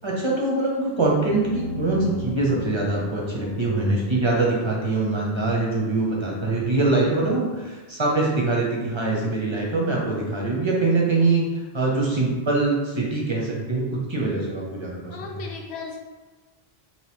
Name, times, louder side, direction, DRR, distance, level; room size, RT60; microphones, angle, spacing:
voice 1, 0.0-11.4 11.7-15.2, right 2 dB, 40° right, -3 dB, 0.5 m, -23 dB
sound 1, 1.0-5.5, left 3 dB, 45° left, 0.7 m, -36 dB
voice 2, 15.1-16.0, left 4 dB, 90° left, 0 dB, 0.9 m, -36 dB
2.8 x 2.5 x 3.4 m, 1.3 s
omnidirectional pair, 1.1 m